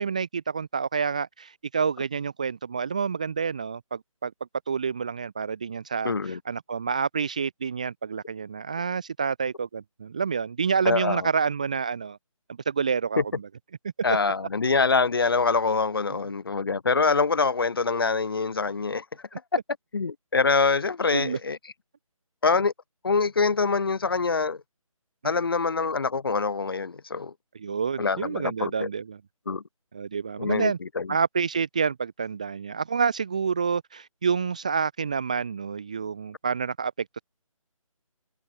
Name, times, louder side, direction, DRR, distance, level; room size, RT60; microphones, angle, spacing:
voice 1, 0.0-4.3 4.7-12.2 12.7-13.2 14.2-14.3 16.1-16.2 21.1-21.4 25.2-25.3 27.6-29.2 29.9-30.8 31.1-37.2, right 6 dB, 10° right, 0.8 m, -28 dB
voice 2, 6.0-6.4 10.8-11.3 13.2-13.3 14.0-19.2 19.9-21.6 22.4-22.7 23.0-24.6 25.2-27.3 28.0-28.9 29.5-29.6 30.4-31.2, left 4 dB, 40° left, 1.3 m, -25 dB
figure-of-eight pair, 175°, 18 cm